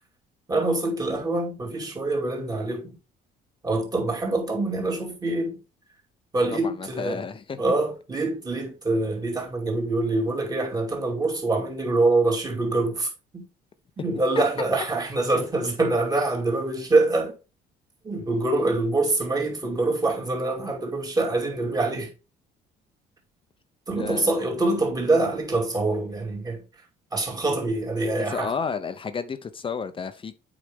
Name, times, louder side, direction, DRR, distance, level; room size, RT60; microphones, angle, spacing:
voice 1, 0.5-2.9 3.6-5.6 6.3-7.2 7.6-13.4 14.0-17.3 18.0-22.1 23.9-26.6 27.1-28.5, right 2 dB, 20° right, 2.5 m, -25 dB
voice 2, 6.5-7.6 24.0-24.5 28.2-30.3, left 5 dB, 30° left, 0.7 m, -32 dB
8.4 x 4.9 x 3.6 m
cardioid pair, 110°, 17 cm